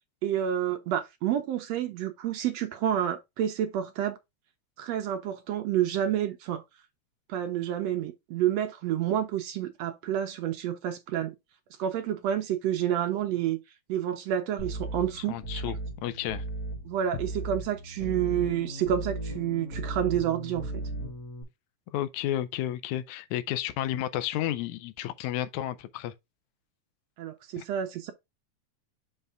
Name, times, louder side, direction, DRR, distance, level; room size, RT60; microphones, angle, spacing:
voice 1, 0.2-4.2 4.8-6.6 7.3-11.3 11.8-13.6 13.9-15.6 16.8-20.8 27.2-28.1, right 10 dB, 70° right, 1.7 m, -29 dB
sound 1, 14.6-21.4, right 2 dB, 30° left, 2.6 m, -36 dB
voice 2, 15.2-15.8 16.0-16.4 21.9-26.1 27.6-27.7, left 12 dB, 85° left, 2.0 m, -32 dB
5.6 x 5.5 x 3.5 m
omnidirectional pair, 3.4 m